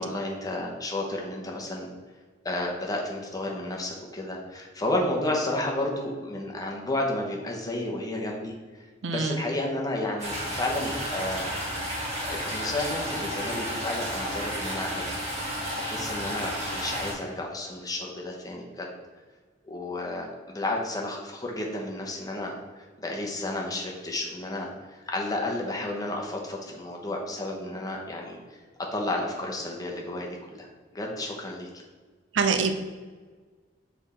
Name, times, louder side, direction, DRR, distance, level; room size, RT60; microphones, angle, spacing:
voice 1, 0.0-1.9 2.4-11.5 12.2-15.2 15.8-18.9 19.7-28.6 28.9-30.7 30.9-31.7, left 1 dB, 20° left, -1 dB, 1.0 m, -32 dB
voice 2, 9.0-9.4 32.3-32.7, right 5 dB, 80° right, 7 dB, 0.6 m, -24 dB
sound 1, 10.2-17.1, equal, 35° right, 1.7 m, -32 dB
7.2 x 3.5 x 4.2 m, 1.4 s
head